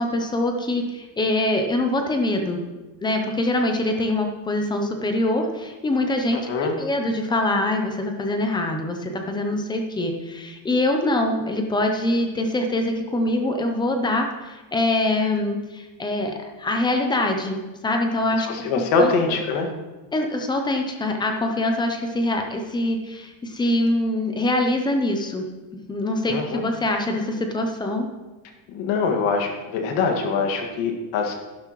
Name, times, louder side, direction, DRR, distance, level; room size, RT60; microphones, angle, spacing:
voice 1, 0.0-2.6 3.0-18.5 18.8-19.1 20.1-25.5 25.9-28.1, left 1 dB, 10° left, 4 dB, 0.3 m, -24 dB
voice 2, 6.3-6.7 18.5-19.7 26.3-26.6 28.7-31.3, left 4 dB, 65° left, 3 dB, 1.9 m, -23 dB
11.5 x 11.5 x 3.0 m, 1.2 s
cardioid pair, 180°, 49 cm